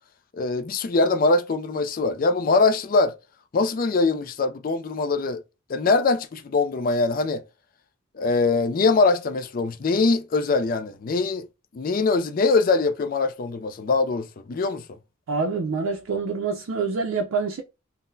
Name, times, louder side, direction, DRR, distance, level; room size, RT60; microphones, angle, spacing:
voice 1, 0.4-3.2 3.5-5.4 5.7-7.4 8.1-11.5 11.7-15.0, left 3 dB, 40° left, 0.3 m, -22 dB
voice 2, 15.3-17.6, right 4 dB, 75° right, 0.5 m, -26 dB
3.8 x 2.1 x 2.6 m
head